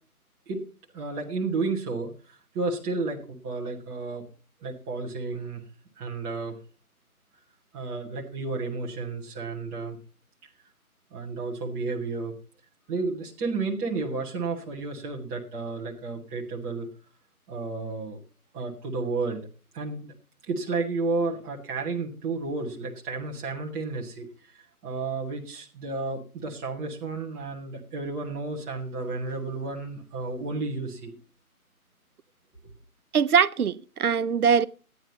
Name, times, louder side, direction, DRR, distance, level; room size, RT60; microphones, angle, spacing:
voice 1, 0.9-4.2 4.6-5.6 6.0-6.6 7.7-10.0 11.1-12.3 12.9-16.9 17.5-18.2 18.5-19.5 19.7-20.1 20.5-24.3 24.5-31.2, right 3 dB, 5° right, 0.7 m, -32 dB
voice 2, 33.1-34.7, right 7 dB, 75° right, 0.8 m, -22 dB
13.0 x 9.4 x 4.0 m
figure-of-eight pair, 145°, 44 cm